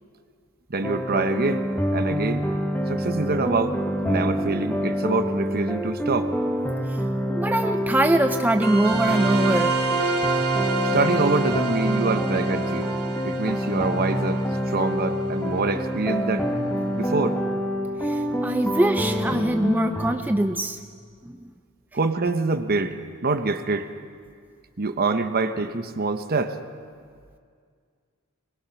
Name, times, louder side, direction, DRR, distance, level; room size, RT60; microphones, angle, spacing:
voice 1, 0.7-1.7 1.9-2.5 2.9-6.3 10.9-13.0 13.2-16.5 16.9-17.4 21.9-23.0 23.2-23.9 24.8-26.6, right 3 dB, 45° right, 9 dB, 1.0 m, -25 dB
sound 1, 0.8-20.2, equal, 10° left, 1.4 m, -26 dB
voice 2, 7.4-9.8 18.0-20.8 21.2-21.4, right 1 dB, 10° right, 7 dB, 0.4 m, -23 dB
sound 2, 8.6-15.7, right 3 dB, 90° right, 3.3 m, -28 dB
22.0 x 21.0 x 5.9 m, 2.1 s
head